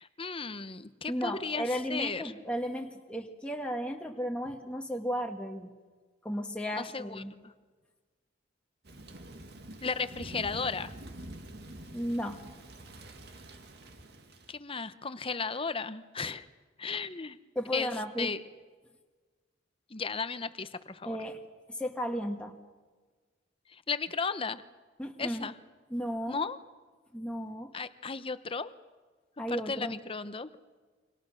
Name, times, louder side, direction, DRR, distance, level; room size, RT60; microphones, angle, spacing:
voice 1, 0.0-2.2 6.8-7.5 9.8-10.9 14.5-16.5 16.8-17.4 17.7-17.9 18.2-18.4 19.9-21.2 23.7-24.6 25.2-25.5 26.3-26.6 27.7-28.7 29.5-30.5, left 4 dB, 30° left, 12 dB, 1.0 m, -35 dB
voice 2, 1.1-5.7 6.2-7.3 11.9-12.4 17.5-18.3 21.0-21.4 21.7-22.6 25.0-25.5 25.9-26.4 27.1-27.7 29.4-30.0, equal, 5° left, 1 dB, 1.6 m, -34 dB
Thunder / Rain, 8.8-14.6, right 1 dB, 60° right, 2.1 m, -47 dB
29.0 x 25.0 x 6.5 m, 1.4 s
head